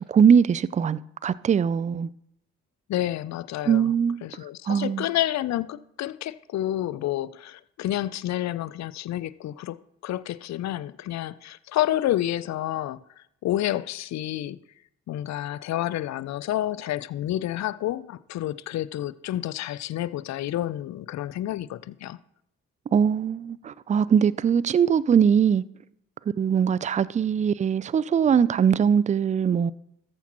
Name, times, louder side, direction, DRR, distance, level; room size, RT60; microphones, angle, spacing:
voice 1, 0.1-2.1 3.7-4.2 4.7-5.1 22.9-25.6 26.4-29.7, right 7 dB, 20° right, 0.3 m, -21 dB
voice 2, 2.9-3.9 4.2-9.8 10.0-13.0 13.4-14.6 15.1-22.2, left 13 dB, 50° left, 0.5 m, -29 dB
14.0 x 8.1 x 3.0 m
hypercardioid pair, 40°, 36 cm